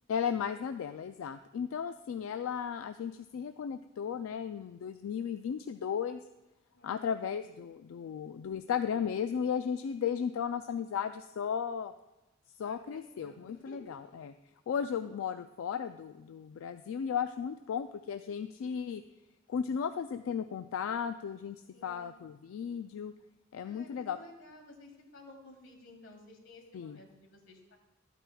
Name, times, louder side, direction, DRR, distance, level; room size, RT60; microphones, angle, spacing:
voice 1, 0.1-6.2 6.8-11.9 12.6-14.3 14.7-19.0 19.5-23.1 23.5-24.2 26.7-27.0, left 7 dB, 90° left, 9 dB, 0.3 m, -35 dB
voice 2, 6.7-7.3 12.6-14.2 21.7-22.1 23.6-27.8, left 2 dB, 65° left, 2 dB, 1.6 m, -54 dB
11.5 x 9.0 x 2.3 m, 1.0 s
head